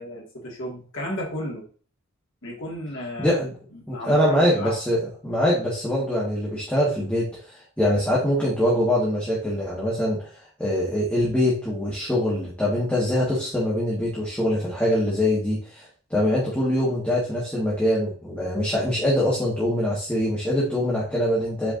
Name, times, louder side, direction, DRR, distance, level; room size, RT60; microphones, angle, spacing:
voice 1, 0.0-1.6 2.4-3.4 3.7-4.7, left 1 dB, 60° left, -2 dB, 2.1 m, -33 dB
voice 2, 3.2-3.6 3.9-5.0 5.2-7.3 7.5-10.3 10.6-21.7, left 1 dB, 5° left, -7 dB, 1.6 m, -23 dB
7.7 x 4.8 x 2.6 m, 0.41 s
head